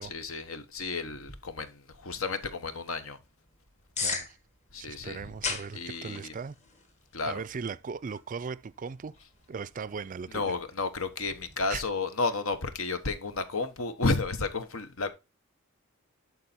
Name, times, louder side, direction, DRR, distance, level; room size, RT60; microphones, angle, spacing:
voice 1, 0.0-3.2 4.7-5.3 5.7-6.3 7.1-7.4 10.3-15.1, left 3 dB, 75° left, 1.2 m, -32 dB
sound 1, 1.1-11.6, left 4 dB, 35° left, 1.6 m, -42 dB
voice 2, 4.0-4.4 4.8-6.6 7.3-9.1 9.5-10.5 11.7-11.8, right 5 dB, 40° right, 0.4 m, -38 dB
11.5 x 4.2 x 4.2 m
head